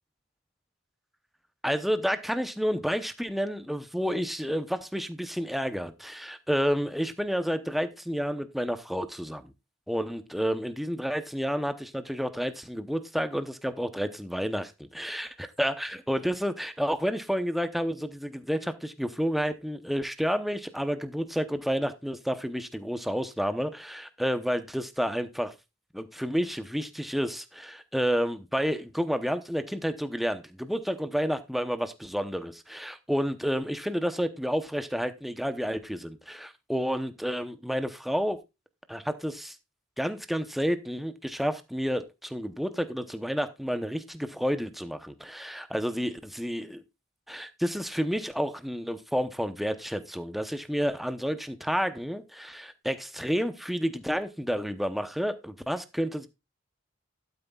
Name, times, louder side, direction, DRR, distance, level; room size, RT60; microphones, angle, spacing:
voice 1, 1.6-9.5 9.9-25.5 25.9-38.4 38.9-39.5 40.0-46.8 47.3-56.3, equal, ahead, 0.8 m, -30 dB
12.0 x 9.1 x 2.3 m
head